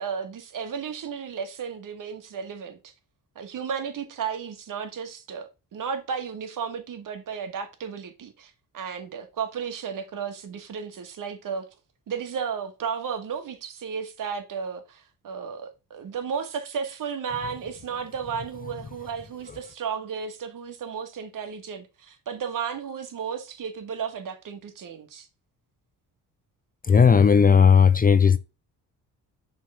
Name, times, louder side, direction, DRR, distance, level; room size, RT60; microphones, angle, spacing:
voice 1, 0.0-2.8 3.3-11.7 12.1-25.3, right 6 dB, 60° right, 1.7 m, -34 dB
voice 2, 26.8-28.4, left 6 dB, 25° left, 0.5 m, -16 dB
6.2 x 3.5 x 5.6 m
cardioid pair, 85°, 35 cm